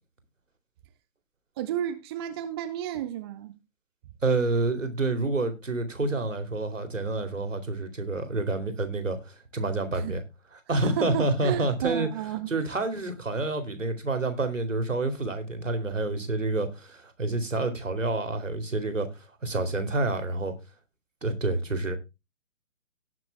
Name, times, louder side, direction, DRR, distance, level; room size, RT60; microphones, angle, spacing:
voice 1, 1.6-3.5 9.9-10.1 10.8-12.5, right 11 dB, 20° right, 0.7 m, -32 dB
voice 2, 4.2-10.2 10.7-12.1 12.5-20.5 21.2-22.0, right 2 dB, 75° right, 2.8 m, -28 dB
18.0 x 6.1 x 3.4 m
figure-of-eight pair, 130°, 38 cm